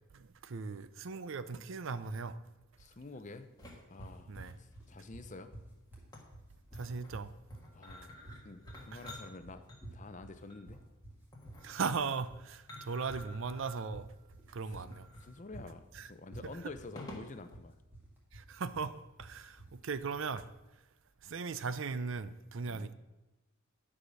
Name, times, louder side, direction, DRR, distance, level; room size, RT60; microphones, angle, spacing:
voice 1, 0.1-2.4 4.3-4.5 6.7-7.3 8.9-9.0 11.6-14.1 14.5-15.1 15.9-16.1 18.3-20.5 21.2-22.9, right 5 dB, 60° right, 0.5 m, -38 dB
voice 2, 2.8-3.5 3.9-5.5 7.7-8.2 8.4-10.8 14.5-14.9 15.2-17.8 22.6-22.9, left 3 dB, 35° left, 0.6 m, -49 dB
sound 1, 2.8-17.5, left 1 dB, 20° left, 1.6 m, -53 dB
sound 2, 3.6-20.6, right 1 dB, 10° right, 2.0 m, -51 dB
11.0 x 4.9 x 6.3 m
head